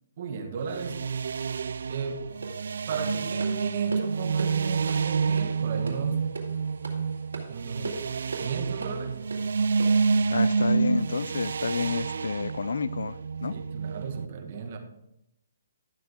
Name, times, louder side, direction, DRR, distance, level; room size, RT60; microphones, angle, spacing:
voice 1, 0.2-1.0 1.9-2.3 2.9-6.2 7.5-8.0 8.4-9.2 13.5-14.8, right 6 dB, 50° right, 1.8 m, -35 dB
sound 1, 0.6-14.3, right 5 dB, 70° right, 0.3 m, -28 dB
sound 2, 2.4-10.1, right 3 dB, 90° right, 2.3 m, -40 dB
voice 2, 10.3-13.5, left 5 dB, 80° left, 0.4 m, -30 dB
12.0 x 7.3 x 3.7 m
hypercardioid pair, 150°, 0 cm